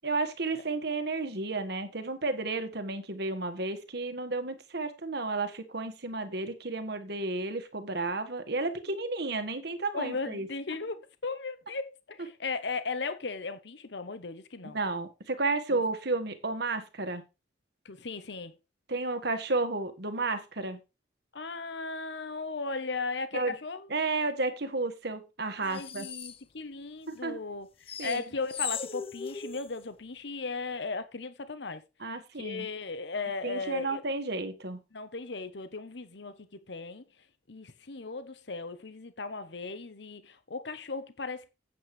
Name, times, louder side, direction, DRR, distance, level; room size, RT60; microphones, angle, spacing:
voice 1, 0.0-10.5 14.6-17.2 18.9-20.8 23.3-23.6 23.9-26.1 27.1-27.4 28.0-28.2 32.0-32.7 33.4-34.8, right 3 dB, 60° right, 1.8 m, -32 dB
voice 2, 9.9-14.8 15.7-15.8 17.8-18.5 21.3-23.9 25.5-31.8 32.4-34.0 34.9-37.0 37.5-41.5, left 4 dB, 65° left, 1.0 m, -37 dB
sound 1, 25.7-26.4 27.9-29.7, left 7 dB, 30° left, 0.8 m, -37 dB
8.6 x 8.0 x 4.9 m
head